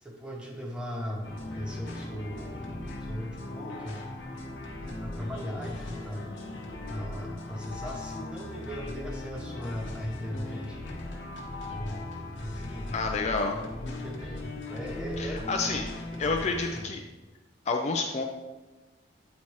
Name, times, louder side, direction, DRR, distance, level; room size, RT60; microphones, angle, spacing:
voice 1, 0.0-4.1 5.0-6.3 6.9-10.8 11.7-12.1 12.4-12.9 13.8-15.8 16.1-16.9, equal, 5° right, -1 dB, 0.9 m, -38 dB
sound 1, 1.2-16.8, left 2 dB, 75° left, 0.9 m, -38 dB
voice 2, 12.9-13.6 15.2-15.9 16.2-17.0 17.7-18.2, left 3 dB, 35° left, 2 dB, 0.4 m, -29 dB
8.5 x 4.2 x 3.1 m, 1.2 s
head